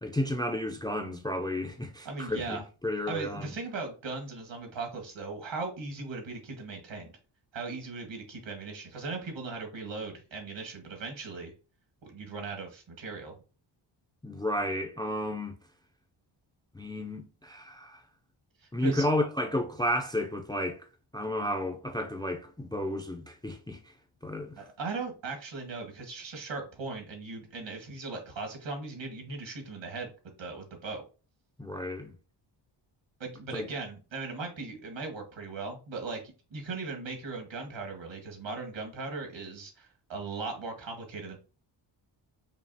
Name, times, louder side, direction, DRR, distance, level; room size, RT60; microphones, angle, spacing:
voice 1, 0.0-3.5 14.2-15.5 16.7-18.0 18.7-20.8 21.1-23.8 24.2-24.6 31.6-32.1 33.5-33.7, left 1 dB, 10° left, 0.5 m, -32 dB
voice 2, 2.0-2.6 3.1-7.1 7.5-11.5 12.0-13.4 18.6-19.1 24.6-30.1 30.4-31.0 33.2-36.2 36.5-41.4, right 3 dB, 65° right, 1.6 m, -38 dB
5.4 x 2.4 x 2.7 m
cardioid pair, 95°, 49 cm